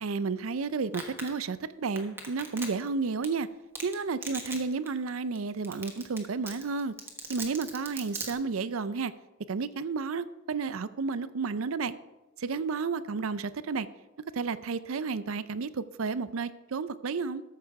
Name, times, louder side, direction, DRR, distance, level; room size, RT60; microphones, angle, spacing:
voice 1, 0.0-3.5 3.8-6.9 7.3-9.1 9.5-11.9 12.4-13.9 14.3-17.4, right 4 dB, 85° right, 15 dB, 0.5 m, -32 dB
Domestic sounds home sounds, 0.9-1.3 2.0-2.9 3.2-3.3 3.7-3.9 4.2-4.6 4.9-5.0 5.3-5.4 5.6-6.2 6.5-8.3, right 3 dB, 10° right, 1.3 m, -37 dB
13.5 x 6.8 x 4.7 m, 1.1 s
head